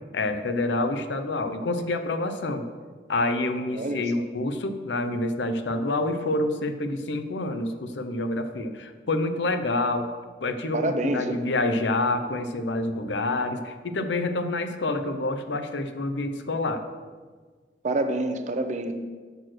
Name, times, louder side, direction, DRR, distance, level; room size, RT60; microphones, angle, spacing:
voice 1, 0.1-2.6 3.1-10.1 10.4-16.8, left 2 dB, 85° left, 8 dB, 0.7 m, -27 dB
voice 2, 3.7-4.2 10.7-11.4 17.8-18.9, right 2 dB, 40° right, 8 dB, 0.6 m, -27 dB
6.9 x 6.2 x 6.1 m, 1.5 s
head